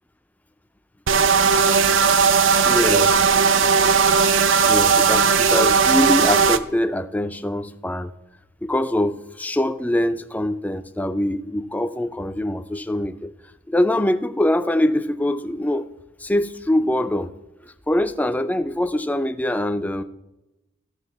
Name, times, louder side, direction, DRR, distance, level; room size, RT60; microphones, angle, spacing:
sound 1, 1.1-6.6, right 5 dB, 55° right, 0.5 m, -17 dB
voice 1, 2.6-3.4 4.7-8.1 8.6-13.3 13.7-15.9 16.2-17.3 17.6-20.0, left 1 dB, 5° left, 9 dB, 0.4 m, -23 dB
15.0 x 6.5 x 4.1 m, 0.97 s
head